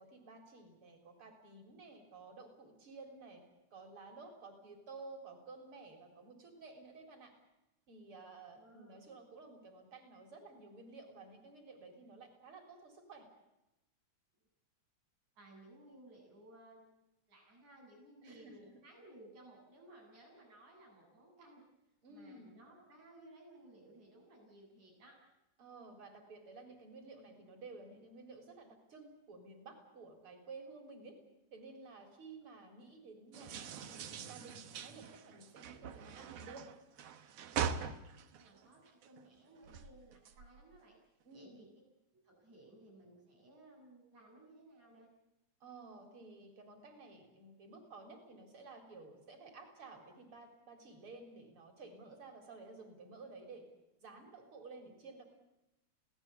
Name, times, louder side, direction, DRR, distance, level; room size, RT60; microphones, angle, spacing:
voice 1, 0.0-3.4 3.7-7.3 7.9-13.3 18.2-18.8 22.0-22.5 25.6-31.2 31.5-36.7 41.2-41.6 45.6-53.6 54.0-55.2, right 3 dB, 45° right, 5 dB, 4.7 m, -53 dB
voice 2, 8.6-9.1 15.4-16.9 17.3-21.6 22.1-25.2 38.1-41.0 41.3-41.7 42.2-45.1, right 1 dB, 85° right, -1 dB, 9.4 m, -59 dB
sound 1, 33.3-39.2 39.6-40.8, right 7 dB, 65° right, 2.1 m, -42 dB
26.5 x 17.5 x 8.4 m, 0.94 s
omnidirectional pair, 3.3 m